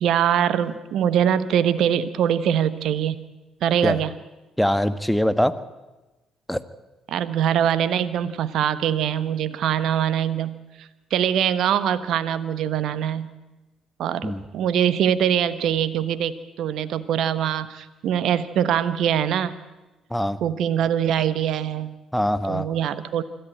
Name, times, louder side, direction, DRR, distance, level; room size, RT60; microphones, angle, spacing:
voice 1, 0.0-3.3 3.6-4.1 7.1-13.3 14.0-19.6 20.4-21.9 22.5-23.2, right 9 dB, 65° right, 15 dB, 1.1 m, -23 dB
voice 2, 4.6-5.5 6.5-6.6 14.2-14.4 20.1-20.4 22.1-22.7, equal, 5° left, 13 dB, 1.4 m, -22 dB
25.5 x 14.0 x 8.9 m, 1.1 s
hypercardioid pair, 45°, 0 cm